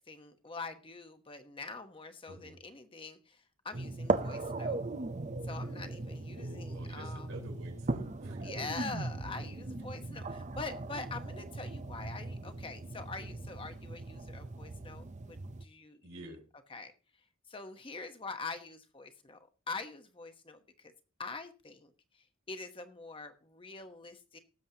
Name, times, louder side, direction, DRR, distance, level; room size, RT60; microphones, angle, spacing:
voice 1, 0.0-4.8 5.4-7.3 8.4-16.4 16.7-16.9 17.5-19.4 19.7-20.9 21.2-24.4, left 4 dB, 25° left, 7 dB, 1.1 m, -44 dB
voice 2, 2.3-2.6 6.3-8.5 16.0-16.4, right 1 dB, 80° right, -1 dB, 4.2 m, -48 dB
sound 1, 3.7-15.6, right 2 dB, 35° right, 0.6 m, -38 dB
18.5 x 7.3 x 2.8 m, 0.35 s
head